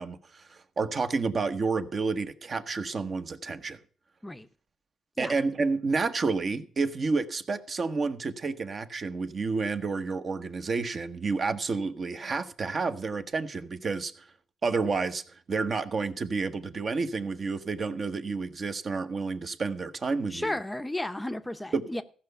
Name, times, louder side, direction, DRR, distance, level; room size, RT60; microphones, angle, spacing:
voice 1, 0.0-3.8 5.2-14.1 14.6-15.2 15.5-20.6 21.7-21.8, right 4 dB, 40° right, 1.1 m, -30 dB
voice 2, 20.3-22.0, left 1 dB, 10° left, 0.7 m, -33 dB
15.0 x 5.8 x 6.6 m
cardioid pair, 90°, 0 cm